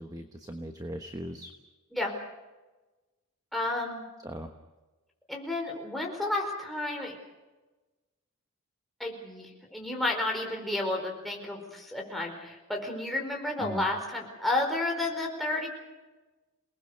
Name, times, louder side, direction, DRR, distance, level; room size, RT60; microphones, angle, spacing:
voice 1, 0.0-1.5 4.2-4.5 13.6-13.9, equal, 15° right, 5 dB, 1.2 m, -38 dB
voice 2, 3.5-4.0 5.3-7.2 9.0-15.7, left 2 dB, ahead, 0 dB, 4.7 m, -31 dB
28.5 x 19.5 x 6.7 m, 1.2 s
head